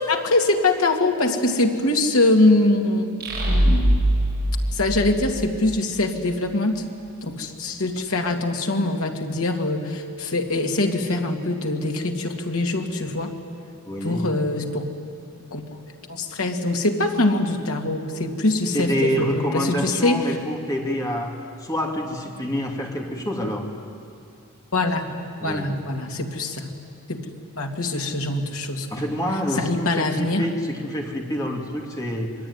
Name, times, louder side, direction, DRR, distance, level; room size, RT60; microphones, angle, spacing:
voice 1, 0.0-3.1 3.5-4.1 4.7-6.8 7.2-13.3 14.0-14.9 15.5-15.8 16.1-20.2 24.7-26.7 27.1-27.3 27.6-28.9 29.6-30.5, left 2 dB, 75° left, 2 dB, 2.6 m, -23 dB
sound 1, 3.2-5.8, equal, 45° right, 7.2 m, -22 dB
voice 2, 13.9-14.3 18.7-23.7 25.4-25.7 28.9-32.3, equal, 15° left, 0 dB, 2.7 m, -27 dB
26.0 x 22.0 x 9.8 m, 2.4 s
head